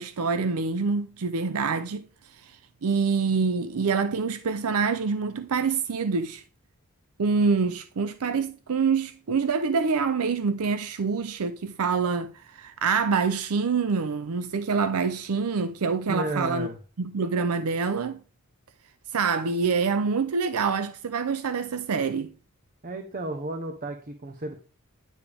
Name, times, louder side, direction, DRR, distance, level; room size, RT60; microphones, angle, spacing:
voice 1, 0.0-2.1 2.4-2.6 2.8-6.4 7.2-16.7 17.0-18.2 19.1-22.3, right 5 dB, 70° right, 0.5 m, -26 dB
voice 2, 16.1-16.8 22.8-24.6, right 1 dB, 40° right, 0.9 m, -32 dB
10.0 x 6.9 x 3.4 m
head